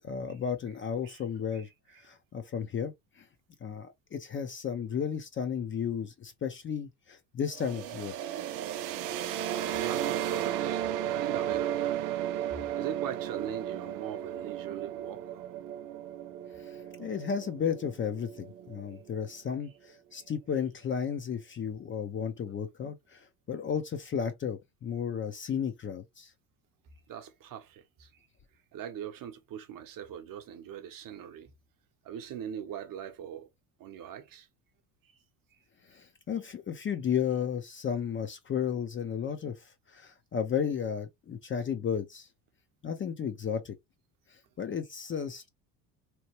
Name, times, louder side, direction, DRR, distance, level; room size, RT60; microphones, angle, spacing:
voice 1, 0.0-1.7 2.0-3.2 3.6-8.1 16.6-26.3 35.9-39.6 39.9-42.3 42.8-43.7 44.6-45.5, left 7 dB, 25° left, 0.5 m, -33 dB
voice 2, 1.5-2.1 9.8-12.0 12.5-15.4 20.1-20.2 27.1-28.3 28.7-31.5 32.0-33.5 33.8-34.5 35.0-35.1 35.5-35.6, right 9 dB, 45° right, 0.8 m, -41 dB
sound 1, 7.5-19.2, right 11 dB, 90° right, 0.5 m, -34 dB
2.9 x 2.1 x 3.0 m
supercardioid pair, 90°, 46 cm